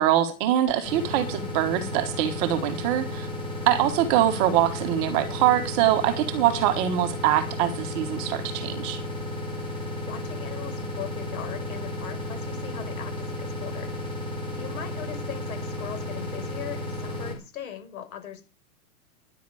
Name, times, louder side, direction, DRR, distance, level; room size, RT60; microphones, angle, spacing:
voice 1, 0.0-3.3 3.7-9.0, right 12 dB, 25° right, 1.4 m, -23 dB
sound 1, 0.8-17.3, left 1 dB, 10° left, 4.2 m, -33 dB
voice 2, 3.6-4.0 9.6-9.8 10.0-14.2 14.5-18.4, left 9 dB, 60° left, 5.3 m, -40 dB
13.0 x 11.0 x 4.8 m
supercardioid pair, 170°, 46 cm